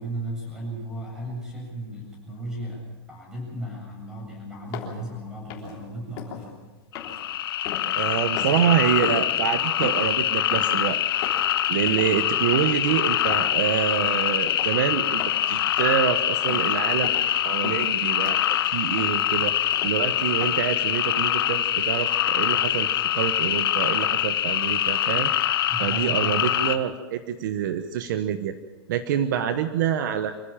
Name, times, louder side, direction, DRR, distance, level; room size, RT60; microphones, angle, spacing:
voice 1, 0.0-2.8 3.1-6.6 25.7-26.5, right 1 dB, 5° right, -2 dB, 7.8 m, -35 dB
sound 1, 4.7-5.0 5.5-5.8 6.2-6.5 6.9-8.1 8.4-8.7 9.0-9.4 9.8-10.1 10.5-10.8 11.2-11.5 11.9-12.1 12.5-12.8 13.2-13.5 13.9-14.1 14.5-14.8 15.2-15.5 15.8-16.1 16.5-16.7 17.0-17.3 17.6-17.9 18.2-18.5 19.0-19.2 19.7-20.0 20.4-20.5, left 8 dB, 30° left, 3.4 m, -37 dB
sound 2, 6.9-26.8, left 12 dB, 65° left, 1.3 m, -24 dB
voice 2, 7.9-11.0 11.7-15.2 15.5-25.3 25.8-28.5 28.9-30.4, right 9 dB, 50° right, 9 dB, 1.2 m, -26 dB
26.5 x 15.0 x 7.4 m, 1.3 s
supercardioid pair, 175°, 13 cm